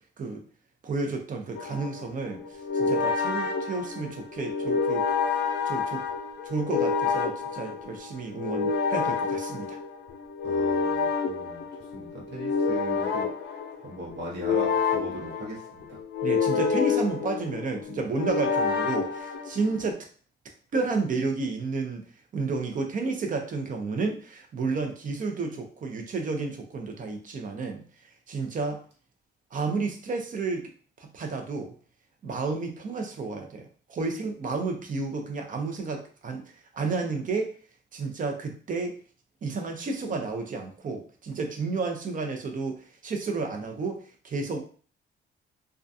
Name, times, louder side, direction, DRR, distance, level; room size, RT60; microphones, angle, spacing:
voice 1, 0.8-5.0 5.7-6.1 6.4-9.8 16.2-20.1 20.7-22.0 22.3-27.8 28.3-28.8 29.5-30.7 31.0-31.7 32.2-33.6 33.9-36.4 36.7-37.5 37.9-39.0 39.4-44.6, right 4 dB, 40° right, 4 dB, 0.6 m, -31 dB
sound 1, 1.5-19.9, left 5 dB, 60° left, 0.5 m, -28 dB
voice 2, 10.4-13.3 13.8-16.0, right 1 dB, 65° right, -3 dB, 1.0 m, -39 dB
2.4 x 2.2 x 2.6 m, 0.42 s
cardioid pair, 90°, 20 cm